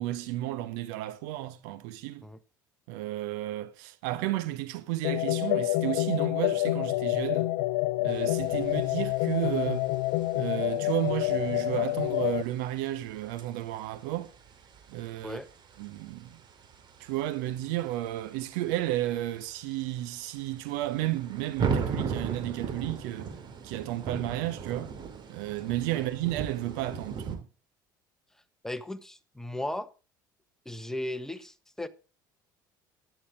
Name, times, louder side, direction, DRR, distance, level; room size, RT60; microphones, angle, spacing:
voice 1, 0.0-2.2 2.9-7.5 8.0-9.9 10.3-14.3 14.9-15.4 15.8-16.3 17.0-23.3 23.6-24.9 25.3-27.5, right 15 dB, 65° right, 1.3 m, -32 dB
sound 1, 5.0-12.4, left 18 dB, 65° left, 0.6 m, -28 dB
sound 2, 8.1-27.4, right 5 dB, 45° right, 2.8 m, -39 dB
voice 2, 28.6-29.9 30.6-31.9, left 1 dB, 5° left, 1.4 m, -36 dB
14.0 x 11.0 x 3.8 m
hypercardioid pair, 65°, 11 cm